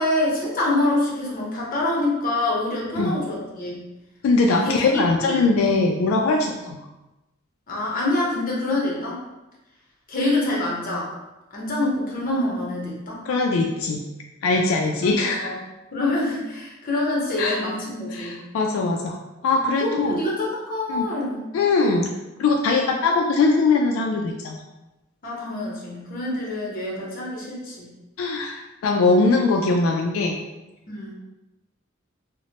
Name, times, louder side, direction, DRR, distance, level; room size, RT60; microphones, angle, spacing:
voice 1, 0.0-3.8 4.5-5.5 6.4-6.5 7.7-9.2 10.1-11.1 11.5-13.2 14.5-15.6 15.9-18.4 19.8-21.4 25.2-27.9 30.9-31.1, left 2 dB, 45° left, -4 dB, 0.8 m, -26 dB
voice 2, 4.2-6.8 13.3-14.0 14.4-15.5 17.4-17.6 18.1-19.2 19.4-20.2 20.9-21.1 21.5-22.1 22.4-24.6 28.2-30.4, left 3 dB, 85° left, 2 dB, 0.3 m, -21 dB
2.9 x 2.1 x 2.8 m, 1.0 s
head